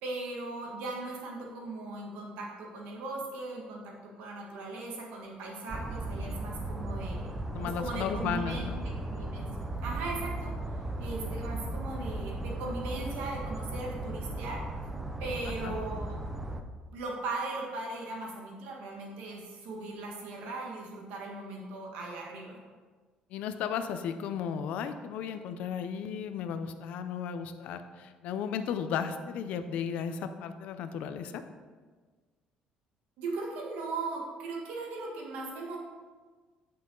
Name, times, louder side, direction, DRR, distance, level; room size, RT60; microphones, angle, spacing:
voice 1, 0.0-7.3 7.6-8.6 9.1-9.5 9.8-10.5 11.0-14.6 15.2-16.2 16.9-22.6 33.2-35.8, right 2 dB, 80° right, -2 dB, 1.7 m, -38 dB
sound 1, 5.7-16.6, right 2 dB, 10° right, 0.4 m, -36 dB
voice 2, 7.5-8.8 15.5-15.8 23.3-31.4, left 7 dB, 60° left, 9 dB, 0.5 m, -35 dB
9.8 x 5.6 x 3.9 m, 1.4 s
cardioid pair, 180°, 3 cm